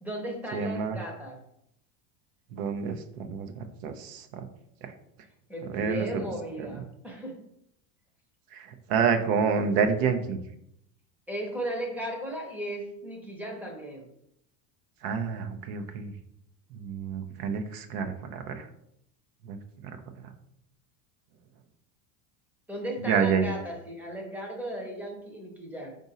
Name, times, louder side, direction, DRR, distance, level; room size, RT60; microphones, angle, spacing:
voice 1, 0.0-1.4 5.5-7.4 11.3-14.1 22.7-26.0, right 1 dB, 5° right, 0 dB, 0.7 m, -36 dB
voice 2, 0.5-1.0 2.5-4.4 4.8-4.9 5.7-6.1 8.5-10.4 15.0-16.1 16.7-18.6 19.4-19.6 19.8-19.9 23.1-23.5, right 6 dB, 75° right, 7 dB, 0.8 m, -28 dB
4.9 x 2.6 x 4.1 m, 0.76 s
supercardioid pair, 150°, 44 cm